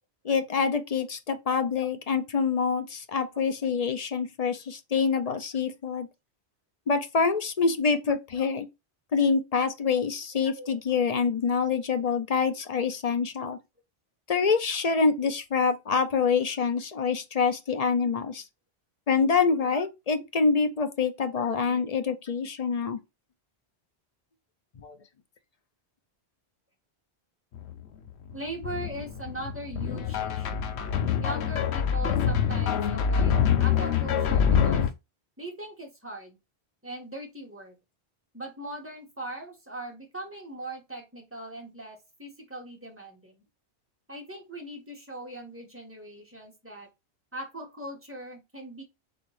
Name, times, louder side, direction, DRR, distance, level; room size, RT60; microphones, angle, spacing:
voice 1, 0.2-6.1 6.9-8.7 9.1-13.6 14.3-18.4 19.1-23.0 24.8-25.0, left 5 dB, 45° left, 0.6 m, -26 dB
sound 1, 27.5-27.8 28.1-34.9, left 8 dB, 80° left, 0.9 m, -25 dB
voice 2, 28.3-30.7 31.2-34.9 35.4-36.4 36.8-37.7 38.3-43.3 44.1-46.9 47.3-48.8, right 1 dB, 10° right, 1.5 m, -40 dB
4.0 x 3.5 x 3.2 m
omnidirectional pair, 1.1 m